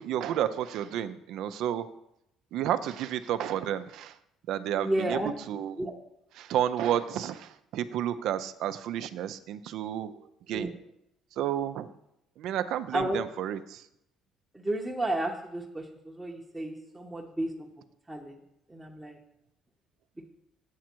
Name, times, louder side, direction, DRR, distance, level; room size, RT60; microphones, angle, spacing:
voice 1, 0.0-1.9 2.5-4.2 4.5-5.9 6.3-10.7 11.3-11.9 12.4-13.9, right 10 dB, 70° right, 11 dB, 0.5 m, -31 dB
voice 2, 4.8-5.3 5.8-5.9 10.5-10.7 12.9-13.2 14.5-17.5 18.1-18.3 18.7-19.2, right 1 dB, 10° right, -1 dB, 0.8 m, -32 dB
8.2 x 6.2 x 4.5 m, 0.80 s
cardioid pair, 120°, 0 cm